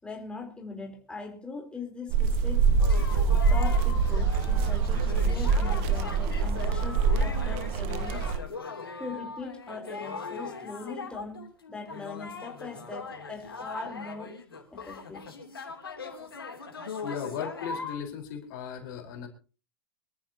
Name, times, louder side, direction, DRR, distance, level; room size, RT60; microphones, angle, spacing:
voice 1, 0.0-2.7 3.5-8.3 9.0-14.4 14.7-15.3, left 4 dB, 10° left, 2 dB, 3.9 m, -41 dB
sound 1, 2.1-8.4, right 5 dB, 50° right, 1.6 m, -25 dB
sound 2, 2.8-18.0, left 4 dB, 85° left, 3.1 m, -40 dB
voice 2, 17.0-19.3, left 8 dB, 55° left, 2 dB, 4.3 m, -36 dB
24.0 x 14.0 x 2.9 m, 0.35 s
hypercardioid pair, 100°, 12 cm